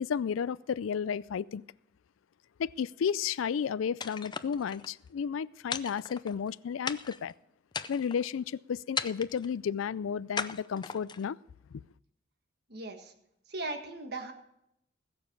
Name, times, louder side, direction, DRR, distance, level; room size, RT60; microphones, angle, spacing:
voice 1, 0.0-1.6 2.6-7.3 7.9-11.4 11.7-11.8, left 7 dB, 85° left, 0.4 m, -32 dB
sound 1, 4.0-4.9 5.7-6.5 6.9-7.3 7.7-8.3 9.0-9.5 10.4-11.3, left 6 dB, 20° left, 0.5 m, -37 dB
voice 2, 12.7-13.1 13.5-14.3, right 2 dB, 55° right, 1.6 m, -38 dB
20.0 x 7.0 x 5.3 m
head